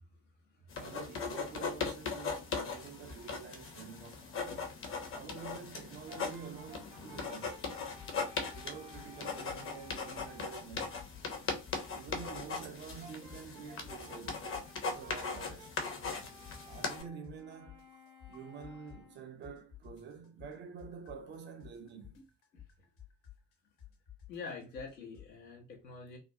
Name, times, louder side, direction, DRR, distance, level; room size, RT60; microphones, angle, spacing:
sound 1, 0.7-17.0, left 4 dB, 25° left, 0.6 m, -39 dB
voice 1, 0.8-4.8 5.1-7.6 8.5-11.0 11.9-14.5 14.9-15.9 16.7-17.9 18.3-22.2, right 6 dB, 25° right, 0.3 m, -48 dB
Brass instrument, 6.1-10.6 13.0-19.3, left 1 dB, 85° right, 0.6 m, -56 dB
sound 2, 8.0-8.3 8.5-10.4 10.7-12.6 12.9-14.8 15.1-19.2 19.4-25.3, left 11 dB, 55° left, 0.8 m, -54 dB
voice 2, 24.3-26.2, left 4 dB, 85° left, 0.7 m, -45 dB
2.4 x 2.1 x 2.5 m
figure-of-eight pair, 45°, 49 cm